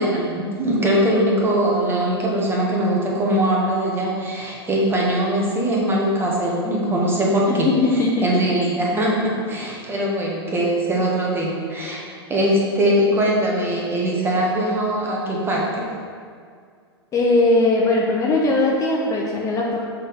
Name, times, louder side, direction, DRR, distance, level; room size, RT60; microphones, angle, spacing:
voice 1, 0.0-7.7 8.2-12.0 12.3-15.9, right 1 dB, 15° right, -3 dB, 1.6 m, -21 dB
voice 2, 7.5-8.4 17.1-19.8, left 2 dB, 20° left, -2 dB, 0.8 m, -19 dB
7.3 x 4.1 x 5.3 m, 2.1 s
figure-of-eight pair, 95°, 14 cm